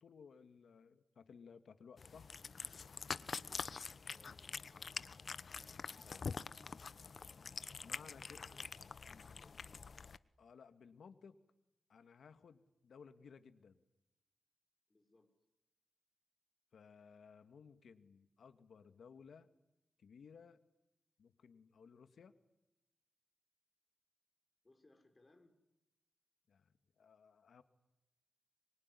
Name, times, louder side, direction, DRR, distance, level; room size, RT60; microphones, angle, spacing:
voice 1, 0.0-2.3 5.9-6.3 7.3-8.4 9.1-9.2 10.4-11.4 11.9-13.8 16.7-19.5 20.0-20.6 21.2-22.4 26.5-27.6, left 6 dB, 85° left, 10 dB, 2.0 m, -59 dB
Cat, 2.0-10.2, left 5 dB, 60° left, 1.0 m, -46 dB
voice 2, 4.1-5.0 8.2-8.7 9.1-9.8 14.9-15.3 24.6-25.6, left 2 dB, 30° left, 5 dB, 5.9 m, -68 dB
24.5 x 23.5 x 9.9 m, 0.93 s
cardioid pair, 70°, 0 cm